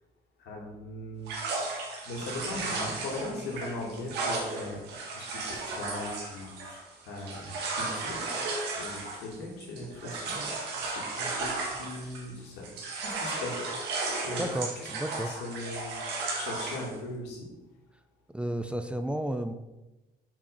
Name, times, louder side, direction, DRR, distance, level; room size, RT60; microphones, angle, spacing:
voice 1, 0.4-1.3 2.0-4.8 5.1-8.3 8.8-10.5 10.7-12.7 13.0-14.0 14.2-14.6 15.1-16.0 16.4-17.5, left 2 dB, 85° left, -1 dB, 2.5 m, -39 dB
sound 1, 1.3-12.4 12.6-16.9, right 3 dB, 85° right, 1.9 m, -35 dB
voice 2, 14.4-15.4 18.3-19.5, right 1 dB, 5° right, 8 dB, 0.5 m, -32 dB
7.3 x 5.3 x 5.4 m, 1.1 s
cardioid pair, 110°, 17 cm